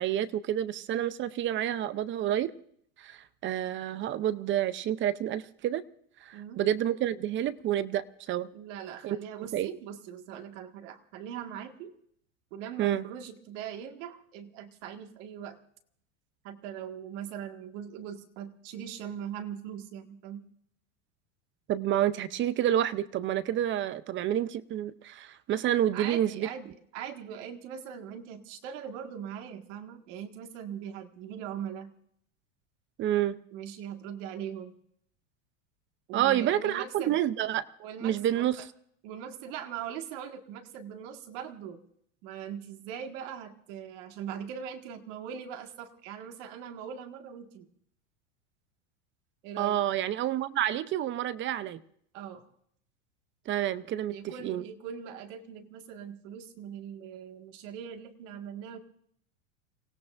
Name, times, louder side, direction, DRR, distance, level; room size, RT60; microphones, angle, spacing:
voice 1, 0.0-2.5 3.0-5.8 6.2-8.5 9.0-9.7 12.8-13.0 21.7-26.5 33.0-33.4 36.1-37.7 38.0-38.6 49.6-51.8 53.5-54.6, right 11 dB, 30° right, 16 dB, 0.6 m, -29 dB
voice 2, 6.3-6.6 8.5-11.9 12.5-15.6 16.4-20.4 25.9-31.9 33.5-34.7 36.1-37.2 37.8-38.7 39.0-41.8 42.2-47.7 49.4-49.8 52.1-52.4 54.1-58.8, right 8 dB, 65° right, 5 dB, 1.9 m, -41 dB
30.0 x 17.0 x 2.6 m, 0.67 s
supercardioid pair, 125°, 40 cm